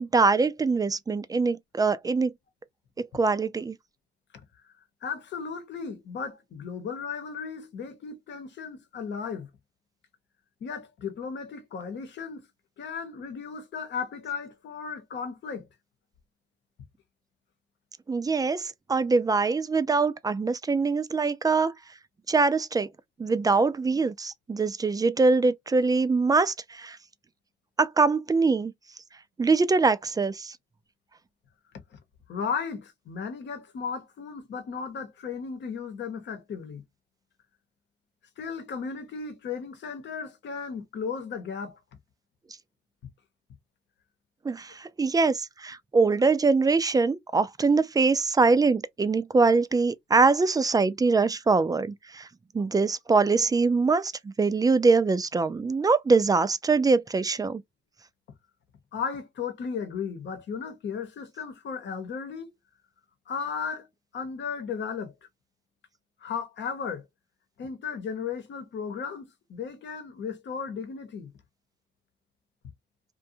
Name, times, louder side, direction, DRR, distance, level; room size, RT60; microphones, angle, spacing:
voice 1, 0.0-2.3 3.0-3.8 18.1-21.7 22.3-22.9 23.2-27.0 27.8-28.7 29.4-30.6 44.4-52.3 52.5-57.6, right 4 dB, 20° right, 0.3 m, -23 dB
voice 2, 5.0-9.5 10.6-12.5 12.8-15.7 32.3-36.8 38.4-41.8 58.9-62.5 63.3-63.9 64.1-65.1 66.2-67.0 67.6-71.3, left 6 dB, 65° left, 0.9 m, -35 dB
2.5 x 2.3 x 2.6 m
cardioid pair, 90°, 20 cm